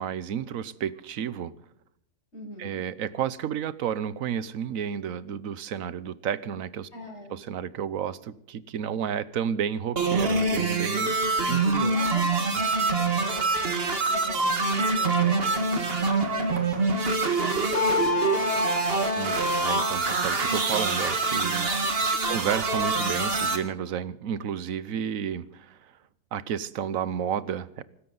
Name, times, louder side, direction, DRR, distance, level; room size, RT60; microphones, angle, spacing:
voice 1, 0.0-1.5 2.6-6.9 7.3-11.1 11.4-11.9 19.2-21.7 22.0-25.9 26.3-27.8, right 8 dB, 85° right, 17 dB, 1.2 m, -31 dB
voice 2, 2.3-2.8 6.9-7.4 11.2-19.1 21.6-22.7, left 1 dB, 55° left, -2 dB, 5.7 m, -43 dB
sound 1, 10.0-23.6, right 3 dB, 45° right, 1.9 m, -25 dB
Mallet percussion, 17.7-20.3, left 6 dB, 85° left, 1.9 m, -30 dB
24.5 x 13.0 x 4.0 m, 0.74 s
omnidirectional pair, 1.4 m